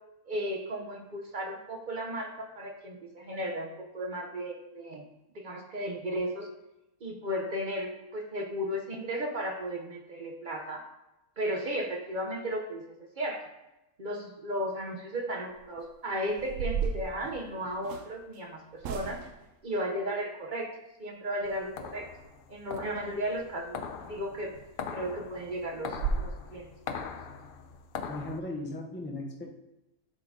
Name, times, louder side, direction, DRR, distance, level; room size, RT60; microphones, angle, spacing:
voice 1, 0.3-5.0 5.3-6.5 7.0-10.8 11.4-13.5 14.0-19.3 19.6-20.7 21.0-22.1 22.5-24.5 24.9-27.1, equal, 45° right, 2 dB, 0.7 m, -35 dB
sound 1, 15.5-15.8 16.3-18.1 18.8-19.5 24.0-24.1 24.5-24.7 25.1-25.2 25.5-25.6 25.9-26.3, right 5 dB, 70° right, 0.9 m, -33 dB
sound 2, 21.4-28.4, left 6 dB, 80° left, 0.5 m, -41 dB
voice 2, 28.1-29.4, left 2 dB, 10° left, 0 dB, 0.6 m, -37 dB
8.3 x 3.8 x 3.6 m, 0.95 s
omnidirectional pair, 1.6 m